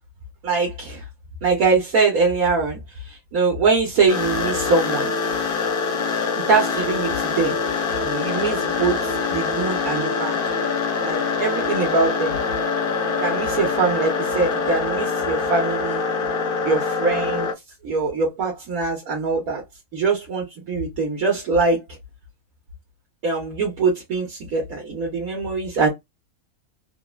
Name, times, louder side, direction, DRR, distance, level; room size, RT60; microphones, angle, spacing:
voice 1, 0.4-1.0 1.4-5.1 6.3-7.6 8.0-10.4 11.0-12.4 13.2-16.1 16.6-17.5 17.8-19.6 19.9-21.8 23.2-25.9, right 4 dB, 70° right, 1.3 m, -23 dB
sound 1, 4.1-17.5, left 4 dB, 50° left, 0.7 m, -24 dB
3.6 x 2.0 x 2.2 m
omnidirectional pair, 1.6 m